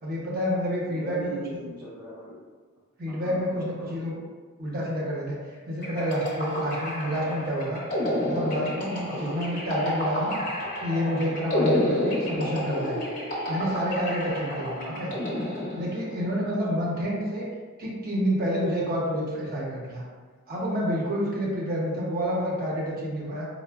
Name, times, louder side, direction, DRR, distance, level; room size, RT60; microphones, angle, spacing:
voice 1, 0.0-1.3 3.0-4.2 4.6-5.4 5.7-7.8 8.2-10.4 10.8-13.0 13.5-15.1 15.7-17.5 17.8-20.0 20.5-23.5, equal, 45° right, -5 dB, 0.6 m, -28 dB
voice 2, 0.8-2.4 3.1-3.9 8.9-9.3 14.2-14.4 14.7-15.0 16.7-16.8, right 1 dB, 5° right, -8 dB, 0.7 m, -41 dB
sound 1, 5.8-16.3, left 1 dB, 40° left, 0.7 m, -30 dB
4.2 x 2.1 x 2.2 m, 1.5 s
head